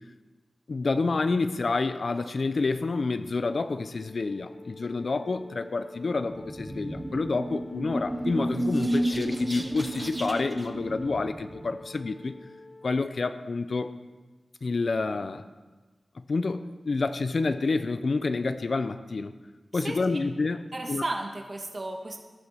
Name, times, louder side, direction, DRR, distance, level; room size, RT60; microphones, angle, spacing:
voice 1, 0.7-12.3 12.8-13.9 14.6-15.5 16.3-19.3 19.7-21.0, left 3 dB, 65° left, 10 dB, 0.7 m, -28 dB
Wind instrument woodwind instrument, 3.8-13.0, left 2 dB, 85° left, 2.5 m, -49 dB
sound 1, 6.3-11.7, right 1 dB, 20° right, 1.4 m, -31 dB
voice 2, 19.7-20.2 20.7-22.2, right 2 dB, 45° right, 2 dB, 1.7 m, -34 dB
14.0 x 11.0 x 5.8 m, 1.3 s
cardioid pair, 60°, 0 cm